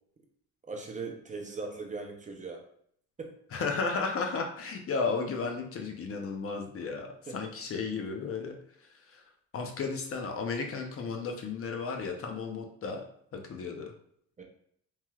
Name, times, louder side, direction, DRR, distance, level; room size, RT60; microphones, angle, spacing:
voice 1, 0.6-2.6 3.2-3.3 7.3-7.4 14.4-14.5, right 4 dB, 25° right, 2 dB, 0.5 m, -39 dB
voice 2, 3.5-7.1 7.3-8.6 9.1-9.2 9.5-13.0 13.3-13.9, left 4 dB, 50° left, 3 dB, 0.6 m, -33 dB
3.1 x 2.8 x 2.3 m, 0.67 s
cardioid pair, 90°, 30 cm